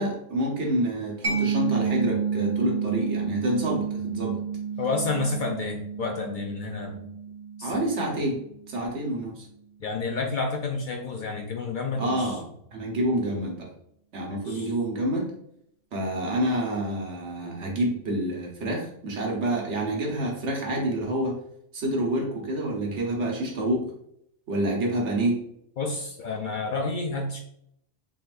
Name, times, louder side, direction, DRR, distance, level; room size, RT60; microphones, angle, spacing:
voice 1, 0.0-4.4 7.6-9.4 12.0-12.4 12.7-13.7 14.1-15.3 15.9-21.4 21.7-23.9 24.5-25.4, right 1 dB, 75° right, -1 dB, 1.4 m, -28 dB
Mallet percussion, 1.2-8.6, right 6 dB, 35° right, 0.7 m, -30 dB
voice 2, 4.8-7.1 7.6-7.8 9.8-12.4 14.4-14.7 25.8-27.4, left 3 dB, 60° left, 2 dB, 0.6 m, -30 dB
4.1 x 4.0 x 2.5 m, 0.71 s
omnidirectional pair, 1.2 m